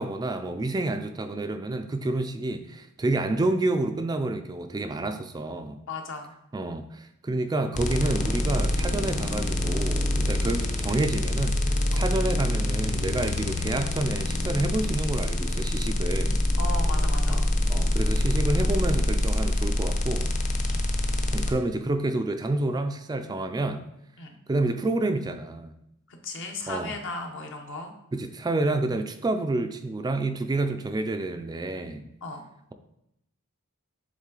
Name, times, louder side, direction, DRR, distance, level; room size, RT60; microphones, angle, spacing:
voice 1, 0.0-5.8 6.5-16.4 17.3-17.4 17.7-20.3 21.3-23.8 24.5-25.7 26.7-27.0 28.1-32.1, right 2 dB, 20° right, 7 dB, 0.3 m, -29 dB
voice 2, 5.9-6.3 11.9-12.0 16.6-17.5 20.7-20.9 24.2-24.4 26.1-27.9 32.2-32.4, left 2 dB, 60° left, 3 dB, 0.9 m, -36 dB
sound 1, 7.7-21.5, left 1 dB, 35° left, 0.6 m, -25 dB
7.2 x 3.6 x 3.8 m, 0.80 s
head